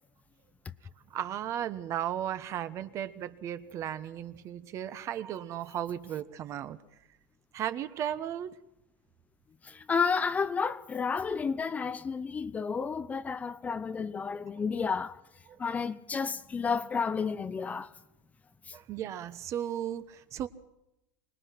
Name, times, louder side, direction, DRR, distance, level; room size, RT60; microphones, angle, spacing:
voice 1, 1.1-6.8 7.5-8.5 14.7-14.9 15.5-15.6 18.7-20.5, right 10 dB, 40° right, 1.2 m, -35 dB
voice 2, 9.6-15.2 15.6-17.9 18.7-18.8, left 5 dB, 20° left, 0.7 m, -31 dB
25.0 x 20.0 x 6.0 m
supercardioid pair, 145°, 8 cm